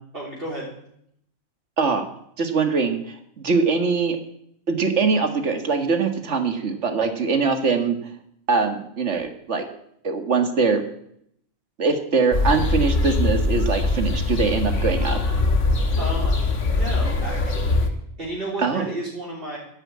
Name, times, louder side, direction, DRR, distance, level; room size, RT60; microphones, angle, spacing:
voice 1, 0.1-0.7 16.0-16.3 16.6-19.6, right 1 dB, 45° right, -5 dB, 3.6 m, -32 dB
voice 2, 2.4-4.2 4.7-8.0 8.5-9.7 10.0-10.8 11.8-15.2 18.6-18.8, right 4 dB, 60° right, 6 dB, 2.0 m, -22 dB
sound 1, 12.3-17.9, left 2 dB, 65° left, 1.8 m, -22 dB
11.5 x 10.0 x 8.5 m, 0.72 s
omnidirectional pair, 1.4 m